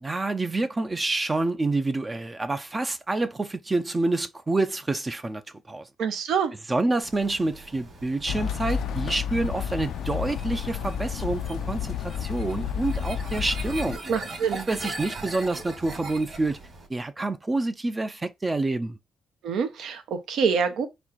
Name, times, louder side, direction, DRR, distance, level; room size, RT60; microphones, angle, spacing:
voice 1, 0.0-5.4 5.7-5.9 6.7-14.0 14.5-16.6 16.9-19.0, right 2 dB, 20° right, 0.5 m, -27 dB
voice 2, 6.0-6.5 14.1-14.6 19.4-20.9, right 6 dB, 75° right, 0.8 m, -26 dB
sound 1, 7.0-16.9, right 2 dB, 45° right, 2.5 m, -41 dB
sound 2, 8.3-14.0, left 8 dB, 75° left, 0.4 m, -31 dB
4.2 x 2.3 x 4.5 m
cardioid pair, 90°, 0 cm